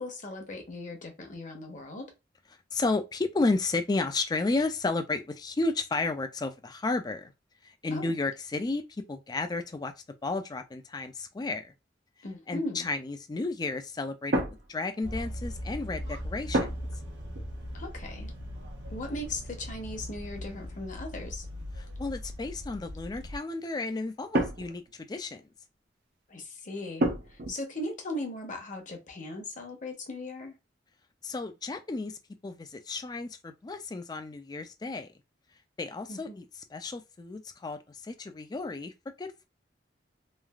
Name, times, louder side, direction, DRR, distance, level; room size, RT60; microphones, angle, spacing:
voice 1, 0.0-2.1 7.9-8.1 12.2-12.9 17.7-18.3 18.9-21.5 26.3-30.6 36.1-36.4, left 1 dB, 45° left, 0.8 m, -38 dB
voice 2, 2.7-7.3 7.6-8.8 9.1-9.9 10.2-11.7 12.5-14.4 14.7-16.7 21.8-25.5 31.2-35.1 35.8-36.5 36.7-38.9 39.2-39.5, left 3 dB, 20° left, 0.3 m, -32 dB
sound 1, 14.3-15.5 16.5-17.1 17.3-17.6 18.5-19.7 20.7-20.8 21.2-22.0 23.8-25.0 27.0-27.5, right 1 dB, 55° right, 0.6 m, -32 dB
sound 2, 15.0-23.4, equal, 75° right, 1.0 m, -39 dB
3.1 x 2.3 x 2.3 m
head